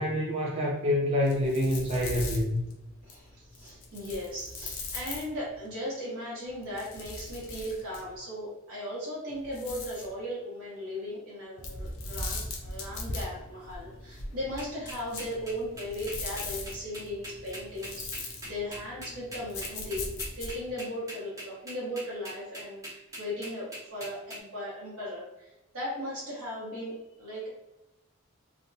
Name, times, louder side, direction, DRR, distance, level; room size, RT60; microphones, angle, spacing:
voice 1, 0.0-2.6, left 1 dB, 30° right, -5 dB, 0.5 m, -27 dB
sound 1, 1.2-5.7 6.5-8.2 9.3-10.1 11.6-20.7, left 2 dB, 70° left, 0.6 m, -40 dB
voice 2, 3.0-20.1 20.4-27.5, equal, 65° right, -8 dB, 1.0 m, -37 dB
sound 2, 14.6-24.4, equal, 15° right, 0.9 m, -42 dB
3.3 x 2.2 x 2.6 m, 0.95 s
head